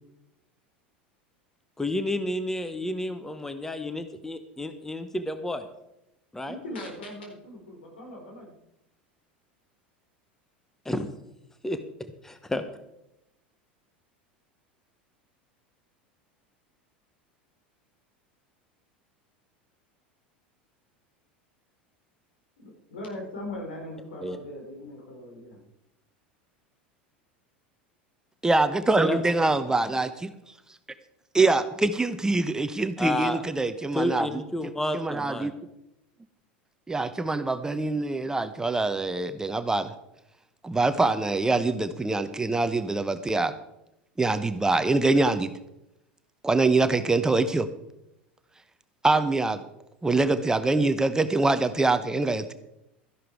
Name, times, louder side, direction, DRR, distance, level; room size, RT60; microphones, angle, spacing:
voice 1, 1.8-5.7 6.3-6.6 10.8-11.1 11.6-11.8 12.2-12.6 24.2-24.4 29.0-29.2 33.0-33.4 33.9-35.5, left 1 dB, 5° left, 9 dB, 1.1 m, -30 dB
voice 2, 6.4-8.5 22.6-25.6, left 1 dB, 75° left, 1 dB, 4.3 m, -40 dB
voice 3, 28.4-30.3 31.3-34.3 34.9-35.5 36.9-39.9 40.6-43.5 44.2-45.5 46.4-47.7 49.0-49.6 50.0-52.5, right 3 dB, 10° right, 11 dB, 0.9 m, -24 dB
13.0 x 11.0 x 4.7 m, 0.86 s
figure-of-eight pair, 80°, 6 cm